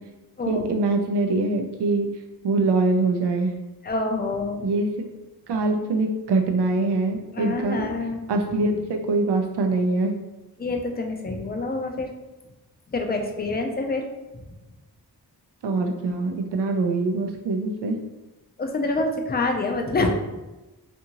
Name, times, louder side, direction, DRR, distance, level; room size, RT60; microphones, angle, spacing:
voice 1, 0.5-2.1 2.4-3.5 4.6-4.9 5.5-7.9 8.3-10.1 15.6-18.0, right 3 dB, 85° right, 4 dB, 0.5 m, -23 dB
voice 2, 3.8-4.7 7.3-8.2 10.6-12.1 12.9-14.1 14.3-14.4 18.6-20.1, left 2 dB, 25° left, 3 dB, 0.3 m, -26 dB
2.6 x 2.5 x 2.8 m, 1.1 s
wide cardioid pair, 110°, 40 cm